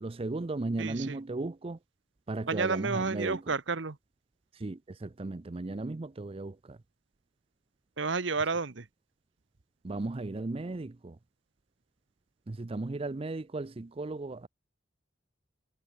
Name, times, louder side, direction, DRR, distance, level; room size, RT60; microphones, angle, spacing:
voice 1, 0.0-1.8 2.3-3.5 4.5-6.8 9.8-11.2 12.5-14.5, right 2 dB, 30° right, 0.5 m, -36 dB
voice 2, 0.8-1.2 2.5-4.0 8.0-8.9, right 4 dB, 70° right, 1.1 m, -31 dB
head